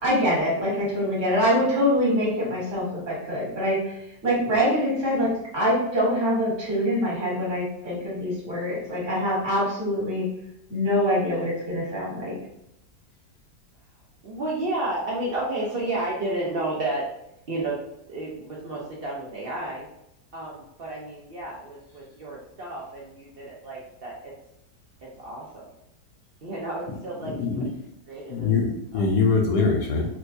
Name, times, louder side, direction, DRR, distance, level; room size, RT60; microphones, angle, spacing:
voice 1, 0.0-10.3 10.7-12.4, equal, 45° right, -6 dB, 1.7 m, -24 dB
voice 2, 14.2-17.1 17.5-17.8 18.1-19.9 20.3-24.3 25.0-25.6 26.4-27.6 28.1-28.5 28.9-29.1, right 2 dB, 70° right, -4 dB, 0.5 m, -31 dB
voice 3, 28.3-30.1, left 4 dB, 70° left, 1 dB, 1.1 m, -23 dB
4.4 x 2.2 x 2.6 m, 0.82 s
omnidirectional pair, 1.8 m